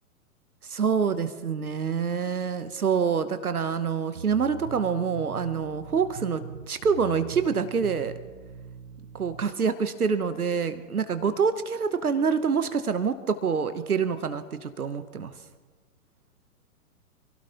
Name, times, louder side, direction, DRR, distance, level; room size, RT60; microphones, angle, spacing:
voice 1, 0.6-8.1 9.1-15.3, right 6 dB, 75° right, 12 dB, 1.0 m, -26 dB
sound 1, 4.1-9.5, right 5 dB, 45° right, 1.4 m, -42 dB
27.0 x 17.0 x 2.9 m, 1.4 s
figure-of-eight pair, 115°, 45 cm